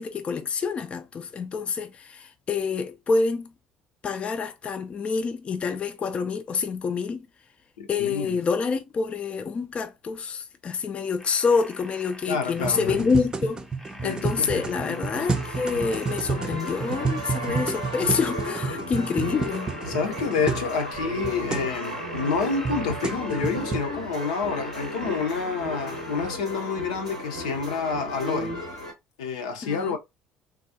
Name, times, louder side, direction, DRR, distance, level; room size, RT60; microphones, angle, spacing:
voice 1, 0.0-3.5 4.0-7.3 7.9-13.6 14.0-19.7 29.6-30.0, left 5 dB, 35° left, 0.4 m, -27 dB
voice 2, 7.8-8.4 12.3-13.1 14.0-15.3 19.9-28.5 29.2-30.0, left 5 dB, 70° left, 0.7 m, -29 dB
sound 1, 11.2-26.3, left 1 dB, 10° left, 0.8 m, -46 dB
sound 2, 12.6-20.7 20.9-21.0 21.2-21.7 22.3-23.9, right 4 dB, 20° right, 0.5 m, -30 dB
sound 3, 14.2-28.9, equal, 90° right, 0.7 m, -34 dB
3.6 x 2.3 x 2.7 m
figure-of-eight pair, 55°, 4 cm